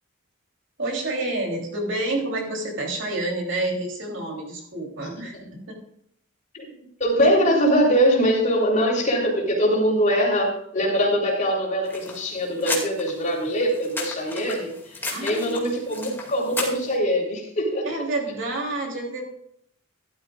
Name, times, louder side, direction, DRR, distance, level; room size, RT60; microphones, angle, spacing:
voice 1, 0.8-5.8 15.1-15.9 17.8-19.2, right 2 dB, 65° right, 0 dB, 3.3 m, -29 dB
voice 2, 7.0-17.9, equal, 40° left, -2 dB, 3.7 m, -22 dB
sound 1, 11.8-16.9, left 3 dB, 10° left, 2.3 m, -34 dB
14.0 x 12.0 x 2.5 m, 0.71 s
head